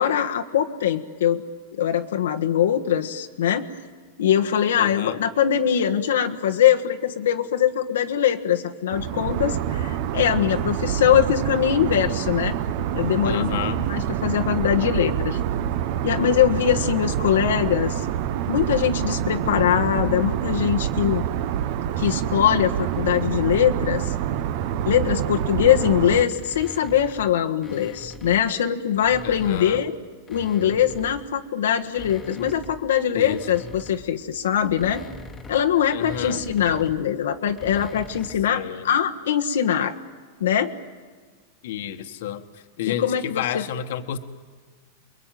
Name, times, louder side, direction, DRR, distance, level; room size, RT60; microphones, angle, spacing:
voice 1, 0.0-1.4 1.7-3.7 4.2-12.6 12.9-15.4 16.0-18.1 18.5-21.2 22.0-24.1 24.8-29.9 30.3-35.0 35.5-39.9 40.4-40.7 42.8-43.6, left 9 dB, 90° left, 4 dB, 1.4 m, -22 dB
voice 2, 4.8-5.2 13.2-13.8 29.2-29.8 33.1-33.4 35.9-36.4 38.5-38.9 41.6-42.4 42.8-44.2, left 10 dB, 70° left, 8 dB, 1.5 m, -30 dB
sound 1, 8.9-26.2, right 10 dB, 55° right, 1.2 m, -26 dB
sound 2, 26.3-28.5 28.9-31.3 31.8-38.5, left 2 dB, 15° left, 1.4 m, -42 dB
28.5 x 22.0 x 9.3 m, 1.5 s
supercardioid pair, 140°, 0 cm